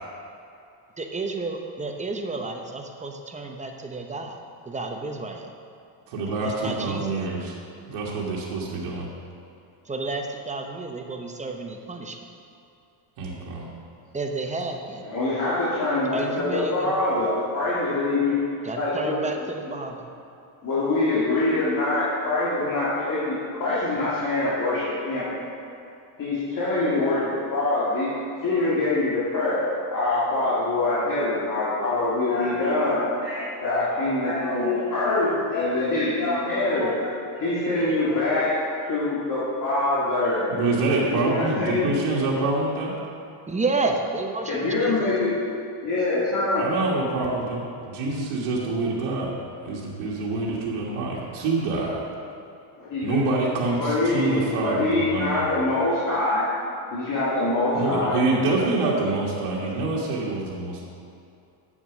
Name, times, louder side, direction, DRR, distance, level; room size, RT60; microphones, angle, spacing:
voice 1, 1.0-4.4 4.7-5.5 6.4-7.2 9.9-12.2 14.1-15.0 16.1-16.9 18.6-20.1 43.5-45.2, right 3 dB, 15° right, 3 dB, 0.7 m, -31 dB
voice 2, 6.1-7.5 7.9-9.1 13.2-13.7 40.5-42.9 46.6-49.3 49.6-52.0 53.0-55.4 57.7-60.8, right 2 dB, 90° right, -4 dB, 1.8 m, -26 dB
voice 3, 15.0-18.4 18.8-19.3 19.7-19.8 20.6-25.3 26.2-28.1 28.4-38.6 38.9-40.5 41.1-41.9 44.5-45.3 45.8-46.7 52.8-53.2 53.8-56.5 56.9-58.2, left 2 dB, 40° left, -9 dB, 2.5 m, -24 dB
8.4 x 7.2 x 6.1 m, 2.6 s
cardioid pair, 130°, 50 cm